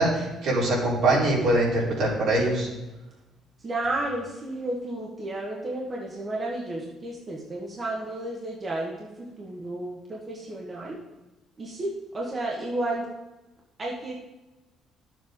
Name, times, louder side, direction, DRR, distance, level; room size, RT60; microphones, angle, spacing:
voice 1, 0.0-2.7, right 2 dB, 70° right, -6 dB, 3.8 m, -23 dB
voice 2, 3.6-11.0 11.6-13.1 13.8-14.2, right 2 dB, 30° right, -2 dB, 1.4 m, -32 dB
11.0 x 7.3 x 3.7 m, 1.1 s
cardioid pair, 130°, 0 cm